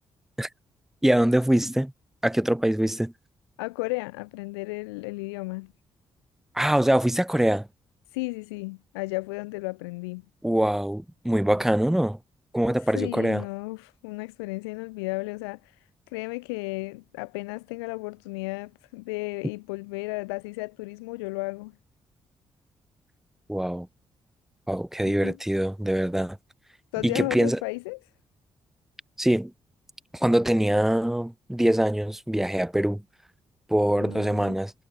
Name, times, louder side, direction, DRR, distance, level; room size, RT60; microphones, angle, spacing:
voice 1, 1.0-1.9 2.2-3.1 6.5-7.7 10.4-12.2 12.5-13.4 23.5-23.9 24.7-26.4 27.0-27.6 29.2-29.5 30.1-33.0 33.7-34.7, right 1 dB, 5° right, 0.3 m, -23 dB
voice 2, 3.6-5.7 8.1-10.2 12.9-15.7 16.1-21.7 25.0-25.4 26.9-28.0 34.0-34.6, left 25 dB, 90° left, 0.5 m, -34 dB
hypercardioid pair, 45°, 13 cm